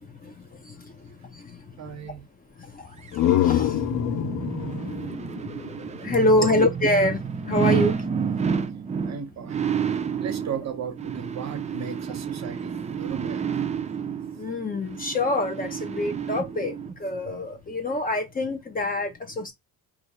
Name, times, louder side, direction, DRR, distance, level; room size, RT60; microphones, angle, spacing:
voice 1, 0.0-1.9 2.6-8.4 14.3-19.5, left 1 dB, 25° left, 1.0 m, -27 dB
voice 2, 1.8-2.3 6.4-6.6 9.0-9.7 10.2-13.4, right 6 dB, 45° right, 1.0 m, -35 dB
sound 1, 2.8-6.5, left 12 dB, 55° left, 0.6 m, -26 dB
sound 2, 3.1-17.0 17.4-17.5, right 6 dB, 20° right, 0.4 m, -30 dB
2.7 x 2.5 x 4.2 m
cardioid pair, 115°, 36 cm